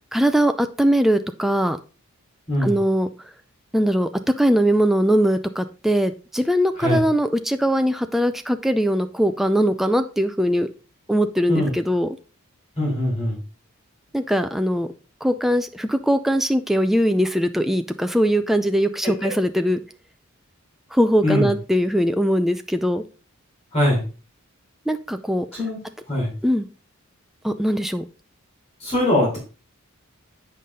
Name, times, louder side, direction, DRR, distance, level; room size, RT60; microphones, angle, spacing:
voice 1, 0.1-1.8 2.6-3.1 3.7-10.7 11.1-12.2 14.1-14.9 15.2-19.8 20.9-23.0 24.9-25.5 26.4-26.7 27.4-28.0, equal, ahead, 8 dB, 0.4 m, -21 dB
voice 2, 12.8-13.4 19.2-19.3 21.2-21.5 23.7-24.0 25.5-25.8 26.1-26.3 28.8-29.4, left 1 dB, 30° left, -5 dB, 4.6 m, -21 dB
8.4 x 5.5 x 3.7 m, 0.34 s
head